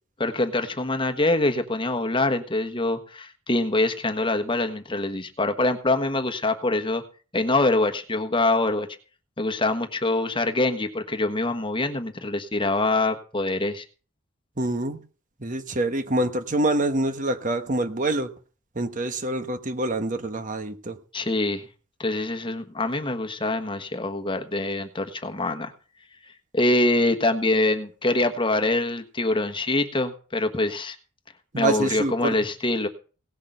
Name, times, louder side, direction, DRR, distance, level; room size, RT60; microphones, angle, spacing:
voice 1, 0.2-7.0 7.3-8.9 9.4-13.8 21.1-21.7 22.0-25.7 26.5-31.0 31.6-32.9, left 2 dB, 25° left, 6 dB, 1.3 m, -24 dB
voice 2, 14.6-15.0 15.4-18.3 18.7-21.0 31.5-32.3, right 1 dB, 40° right, 8 dB, 1.2 m, -26 dB
18.0 x 6.6 x 6.5 m, 0.38 s
head